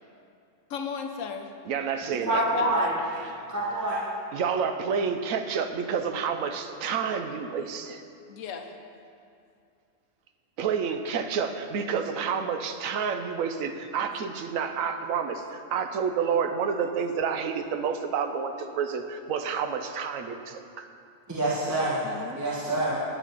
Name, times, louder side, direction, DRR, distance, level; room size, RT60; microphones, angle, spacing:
voice 1, 0.7-1.5 2.1-2.9 8.3-8.7 21.7-22.4, left 6 dB, 75° left, 5 dB, 1.1 m, -34 dB
voice 2, 1.7-2.7 3.2-3.5 4.3-8.0 10.6-20.9, right 6 dB, 85° right, 7 dB, 1.1 m, -29 dB
voice 3, 2.3-2.9 3.5-4.0 21.3-22.0 22.3-22.9, right 2 dB, 15° right, -7 dB, 1.3 m, -26 dB
9.3 x 9.0 x 4.0 m, 2.4 s
omnidirectional pair, 1.4 m